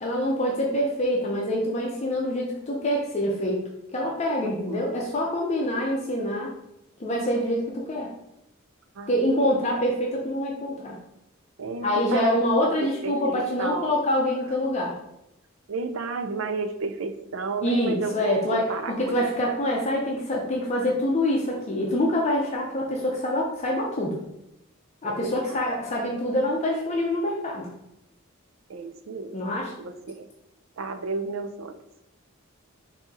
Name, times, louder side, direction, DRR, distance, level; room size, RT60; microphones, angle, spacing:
voice 1, 0.0-3.6 3.9-6.5 7.0-8.1 9.1-10.9 11.8-15.0 17.6-24.2 25.0-27.7 29.3-29.7, left 1 dB, 35° left, -2 dB, 0.6 m, -25 dB
voice 2, 4.4-4.8 9.0-9.5 11.6-12.4 12.8-13.9 15.7-19.3 25.0-25.6 28.7-29.3 29.8-30.3 30.8-31.8, right 4 dB, 70° right, 9 dB, 0.4 m, -32 dB
3.6 x 2.7 x 3.9 m, 0.83 s
head